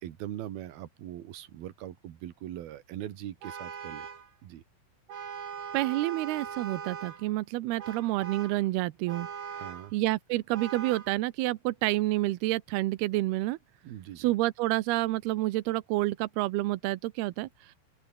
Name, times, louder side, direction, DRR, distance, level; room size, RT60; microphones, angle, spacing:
voice 1, 0.0-4.1 4.4-4.6 9.5-9.9 13.8-14.3, right 12 dB, 60° right, 3.1 m, -41 dB
Vehicle horn car horn honking, 3.4-4.3 5.1-7.3 7.8-8.6 9.1-9.9 10.5-11.1, right 7 dB, 45° right, 4.5 m, -40 dB
voice 2, 5.7-9.3 9.9-13.6 14.2-17.5, right 18 dB, 80° right, 2.3 m, -29 dB
open air
omnidirectional pair, 5.6 m